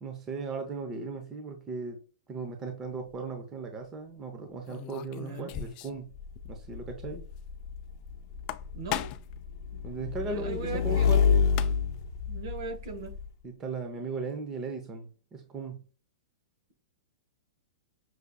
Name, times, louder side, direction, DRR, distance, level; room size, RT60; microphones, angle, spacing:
voice 1, 0.0-2.0 2.3-6.1 6.4-7.3 9.8-11.5 13.4-15.8, right 4 dB, 20° right, 0.7 m, -37 dB
sound 1, 2.8-3.2 4.6-6.1 6.3-6.4 6.8-6.9 8.3-9.4 11.1-11.2 11.4-12.0, left 12 dB, 35° left, 0.3 m, -37 dB
voice 2, 5.2-5.5 8.7-9.1 10.2-11.1 11.6-12.0 12.3-13.2, right 4 dB, 65° right, 1.2 m, -39 dB
Motorcycle / Engine, 6.2-13.3, left 6 dB, 65° left, 0.7 m, -29 dB
6.1 x 2.7 x 2.3 m
hypercardioid pair, 140°, 2 cm